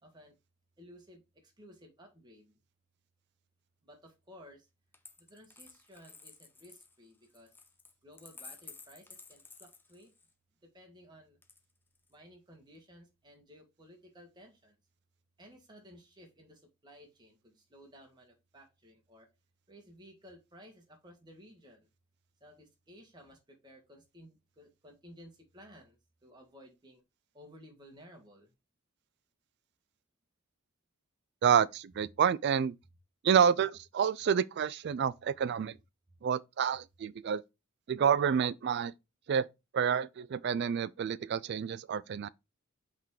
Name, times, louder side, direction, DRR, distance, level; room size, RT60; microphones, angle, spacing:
voice 1, 0.0-0.4 0.8-2.6 3.8-4.7 5.2-7.5 8.0-10.1 10.6-11.4 12.1-14.7 15.4-19.3 19.7-21.9 22.4-26.0 26.2-27.0 27.3-28.5, equal, 20° right, 1.5 m, -56 dB
Coin (dropping), 4.9-10.3 11.4-12.1, left 4 dB, 10° left, 0.7 m, -53 dB
voice 2, 31.4-32.7 33.2-35.7 36.2-37.4 37.9-38.9 39.3-39.5 39.7-42.3, right 7 dB, 50° right, 0.3 m, -28 dB
5.6 x 3.7 x 4.8 m
head